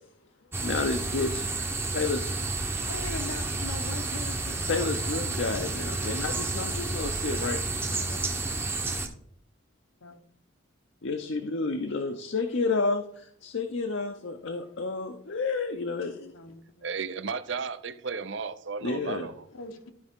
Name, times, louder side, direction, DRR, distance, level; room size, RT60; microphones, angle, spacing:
sound 1, 0.5-9.1, right 3 dB, 10° right, 0.7 m, -31 dB
voice 1, 0.6-1.5 1.9-2.3 4.7-7.6 11.0-16.3 18.8-19.3, left 3 dB, 60° left, 0.6 m, -30 dB
voice 2, 2.9-5.0 5.6-7.0 7.3-7.5 7.9-8.2 10.0-10.2 16.3-16.9 19.5-19.9, left 3 dB, 80° left, 1.0 m, -42 dB
voice 3, 16.8-19.4, right 5 dB, 60° right, 0.6 m, -34 dB
12.5 x 5.0 x 3.6 m
head